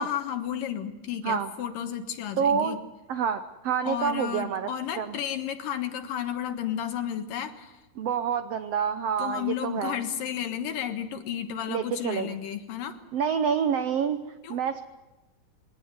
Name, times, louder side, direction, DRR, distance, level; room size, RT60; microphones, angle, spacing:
voice 1, 0.0-2.8 3.8-7.7 9.2-13.0 14.4-14.6, left 9 dB, 70° left, 7 dB, 3.1 m, -32 dB
voice 2, 2.4-2.8 3.1-4.7 5.0-5.2 8.0-10.0 11.7-12.3 13.1-14.8, right 7 dB, 85° right, 9 dB, 1.4 m, -27 dB
23.0 x 18.5 x 9.6 m, 1.1 s
omnidirectional pair, 4.1 m